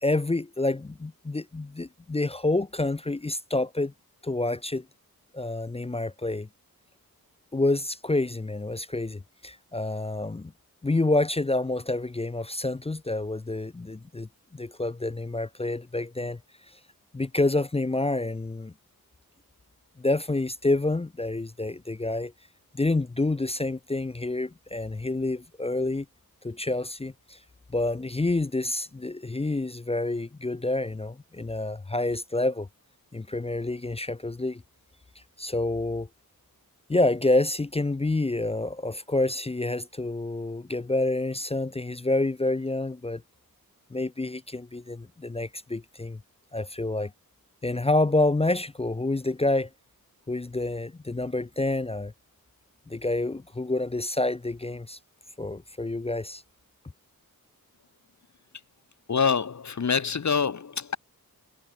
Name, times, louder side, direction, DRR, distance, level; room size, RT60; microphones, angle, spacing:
voice 1, 0.0-3.9 4.2-4.8 5.3-6.5 7.5-10.5 10.8-16.4 17.1-18.7 20.0-22.3 22.7-26.1 26.4-27.4 27.7-32.7 33.1-34.6 35.4-36.1 36.9-43.2 43.9-46.2 46.5-47.1 47.6-49.7 50.3-52.1 52.9-55.0 55.4-56.4, left 2 dB, 15° left, 0.5 m, -28 dB
voice 2, 59.1-61.0, left 6 dB, 50° left, 1.3 m, -25 dB
wide cardioid pair, 125°, 36 cm